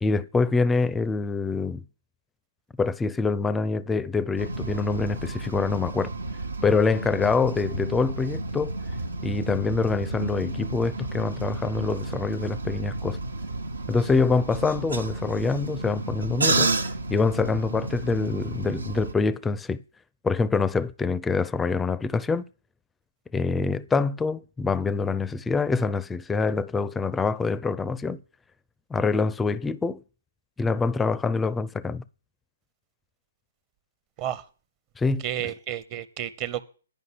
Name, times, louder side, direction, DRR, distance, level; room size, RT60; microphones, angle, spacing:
voice 1, 0.0-1.8 2.8-6.1 6.6-8.7 9.2-13.2 13.9-16.7 17.1-19.8 20.2-22.4 23.3-28.2 28.9-30.0 30.6-32.0 35.0-35.2, left 4 dB, 10° left, 0.5 m, -25 dB
sound 1, 4.4-19.1, right 2 dB, 80° right, 1.1 m, -31 dB
voice 2, 35.2-36.6, right 11 dB, 30° right, 0.8 m, -31 dB
11.0 x 5.3 x 7.8 m
figure-of-eight pair, 130°, 0 cm